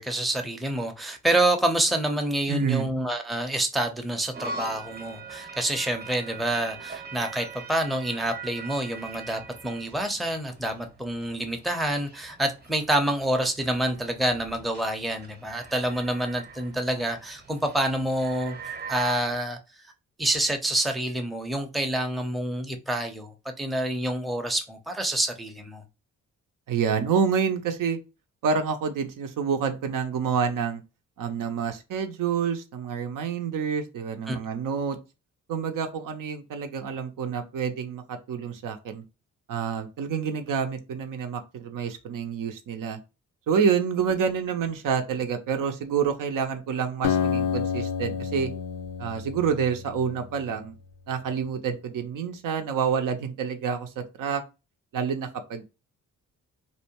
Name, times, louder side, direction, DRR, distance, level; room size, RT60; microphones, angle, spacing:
voice 1, 0.0-18.6 18.9-19.6 20.2-25.8 34.3-34.4, right 1 dB, ahead, 0.6 m, -27 dB
voice 2, 2.5-2.9 26.7-28.0 28.4-30.8 31.2-35.0 35.5-39.0 39.5-43.0 43.5-48.5 49.0-50.7 51.1-54.4 54.9-55.7, right 6 dB, 65° right, 0.6 m, -28 dB
sound 1, 4.3-19.4, right 4 dB, 30° right, 0.8 m, -42 dB
Acoustic guitar, 47.0-50.6, left 7 dB, 70° left, 0.5 m, -29 dB
2.6 x 2.1 x 2.8 m
supercardioid pair, 50°, 36 cm